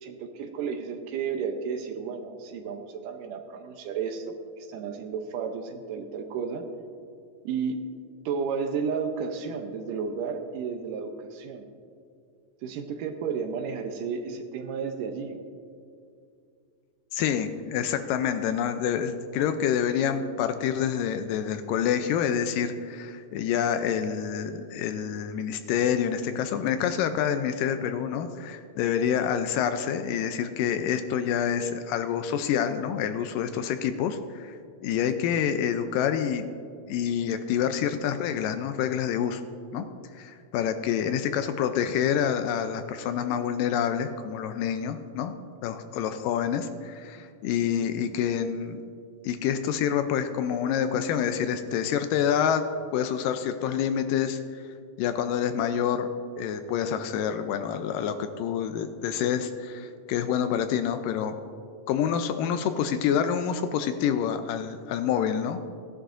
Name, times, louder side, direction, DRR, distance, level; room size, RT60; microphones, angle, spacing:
voice 1, 0.0-6.7 7.5-7.8 8.3-11.7 12.6-15.4, right 6 dB, 75° right, 6 dB, 2.2 m, -32 dB
voice 2, 17.1-36.5 36.9-39.4 39.7-39.9 40.1-45.3 45.6-48.8 49.2-52.6 52.9-54.6 55.0-56.1 56.4-61.4 61.9-65.6, left 8 dB, 80° left, 8 dB, 2.1 m, -27 dB
17.5 x 11.0 x 2.5 m, 2.4 s
omnidirectional pair, 4.1 m